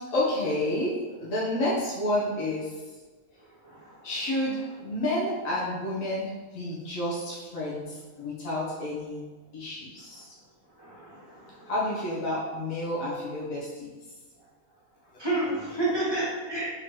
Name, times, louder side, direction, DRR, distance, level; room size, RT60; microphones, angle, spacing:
voice 1, 0.1-2.7 4.0-9.2 9.5-10.3 11.7-13.9, left 1 dB, 75° left, -7 dB, 1.3 m, -30 dB
voice 2, 3.6-4.0 10.8-11.7 15.2-16.7, right 2 dB, 20° right, -8 dB, 1.0 m, -30 dB
3.7 x 3.0 x 2.9 m, 1.3 s
omnidirectional pair, 1.4 m